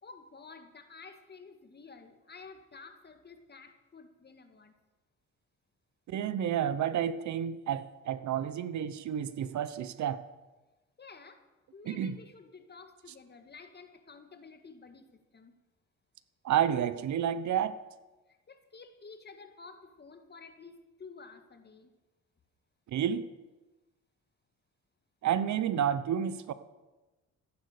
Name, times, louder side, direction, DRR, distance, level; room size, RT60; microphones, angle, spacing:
voice 1, 0.0-4.7 11.0-11.4 11.7-15.5 18.3-21.9, left 4 dB, 35° left, 1.9 m, -51 dB
voice 2, 6.1-10.2 11.9-12.2 16.4-17.8 22.9-23.3 25.2-26.5, right 9 dB, 70° right, 0.9 m, -30 dB
14.5 x 10.5 x 6.7 m
cardioid pair, 90°, 30 cm